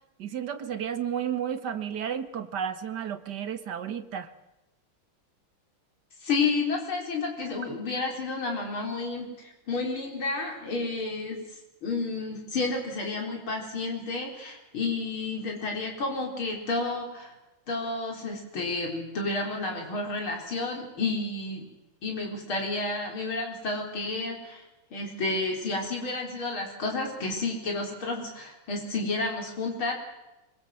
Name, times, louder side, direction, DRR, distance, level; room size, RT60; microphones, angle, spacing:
voice 1, 0.2-4.3, right 8 dB, 55° right, 10 dB, 2.1 m, -32 dB
voice 2, 6.2-11.4 11.8-17.3 17.7-21.7 22.0-24.6 24.9-29.9, left 3 dB, 85° left, 1 dB, 5.2 m, -31 dB
25.0 x 25.0 x 7.8 m, 0.99 s
omnidirectional pair, 2.2 m